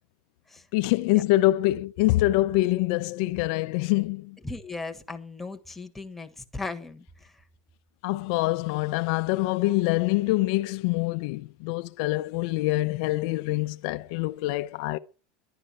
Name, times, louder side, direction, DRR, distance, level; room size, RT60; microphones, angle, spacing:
voice 1, 0.7-4.4 8.0-15.0, left 18 dB, 60° left, 0.6 m, -25 dB
voice 2, 4.4-7.4, left 3 dB, 5° left, 1.4 m, -37 dB
11.0 x 11.0 x 8.9 m
supercardioid pair, 140°, 4 cm